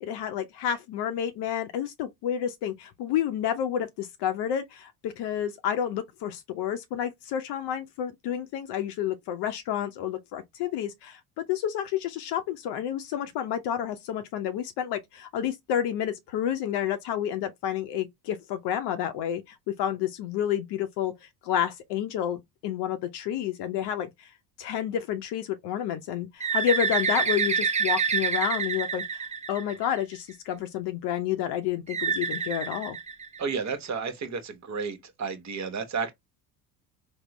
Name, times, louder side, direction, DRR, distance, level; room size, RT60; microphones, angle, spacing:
voice 1, 0.0-24.3 24.6-33.0, left 10 dB, 60° left, 0.6 m, -30 dB
Bird, 26.4-30.1 31.9-33.7, right 6 dB, 15° right, 0.4 m, -27 dB
voice 2, 33.4-36.1, right 5 dB, 35° right, 0.9 m, -32 dB
3.6 x 2.1 x 3.0 m
hypercardioid pair, 65°, 47 cm